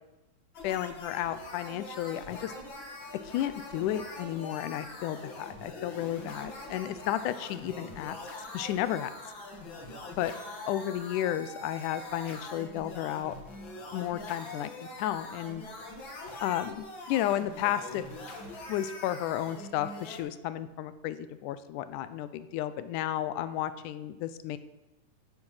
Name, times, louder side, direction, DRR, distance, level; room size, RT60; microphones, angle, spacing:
sound 1, 0.5-20.2, left 2 dB, 40° left, 2.2 m, -43 dB
voice 1, 0.6-2.5 3.2-8.2 8.5-9.1 10.2-10.3 10.7-13.3 13.9-14.7 15.0-15.6 16.4-18.1 18.7-24.6, left 12 dB, 80° left, 13 dB, 2.1 m, -32 dB
17.0 x 7.7 x 5.6 m, 1.0 s
omnidirectional pair, 3.8 m